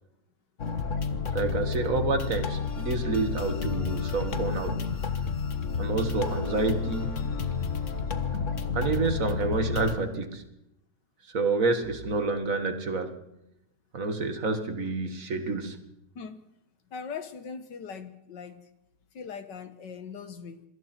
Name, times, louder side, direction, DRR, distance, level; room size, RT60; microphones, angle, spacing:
sound 1, 0.6-10.0, left 5 dB, 50° left, 1.6 m, -30 dB
voice 1, 1.3-4.9 5.8-7.3 8.7-10.5 11.3-13.2 13.9-15.8, right 3 dB, 50° right, 7 dB, 2.1 m, -28 dB
voice 2, 16.9-18.6 19.1-20.6, left 6 dB, 85° left, 10 dB, 2.0 m, -40 dB
27.5 x 22.5 x 4.5 m, 0.86 s
omnidirectional pair, 1.8 m